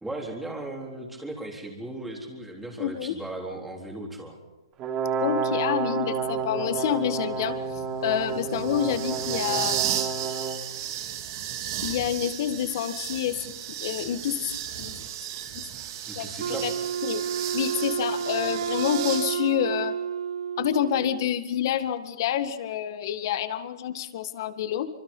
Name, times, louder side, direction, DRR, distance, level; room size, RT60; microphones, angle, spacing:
voice 1, 0.0-4.4 16.1-16.7, right 2 dB, 5° right, 1 dB, 3.8 m, -37 dB
voice 2, 2.8-3.2 5.2-10.1 11.8-13.5 13.8-15.0 16.2-16.3 16.6-16.7 17.0-17.2 17.5-20.0 20.6-24.9, left 10 dB, 45° left, 10 dB, 1.8 m, -28 dB
Brass instrument, 4.8-10.6, right 6 dB, 25° right, 3.4 m, -30 dB
sound 1, 6.2-19.3, right 10 dB, 40° right, 3.0 m, -35 dB
Wind instrument woodwind instrument, 16.4-21.4, right 7 dB, 75° right, 1.4 m, -30 dB
26.5 x 25.5 x 5.6 m, 1.0 s
hypercardioid pair, 160°, 3 cm